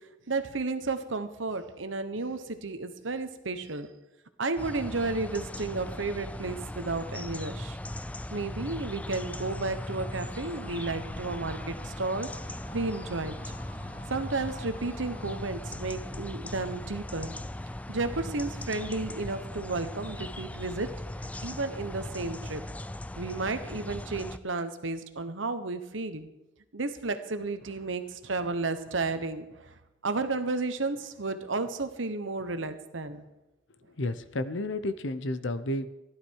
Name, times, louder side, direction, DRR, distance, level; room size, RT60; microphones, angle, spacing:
voice 1, 0.3-3.9 4.4-7.8 8.3-12.3 12.7-13.5 14.1-17.4 17.9-20.9 21.4-22.6 23.2-26.3 26.7-29.7 30.0-33.2, right 3 dB, 85° right, 9 dB, 1.2 m, -32 dB
sound 1, 4.6-24.4, left 1 dB, 10° left, 0.4 m, -39 dB
sound 2, 9.9-15.4, equal, 45° left, 2.7 m, -50 dB
voice 2, 33.9-35.9, left 1 dB, 75° left, 13 dB, 0.9 m, -31 dB
15.0 x 12.0 x 4.8 m, 0.96 s
head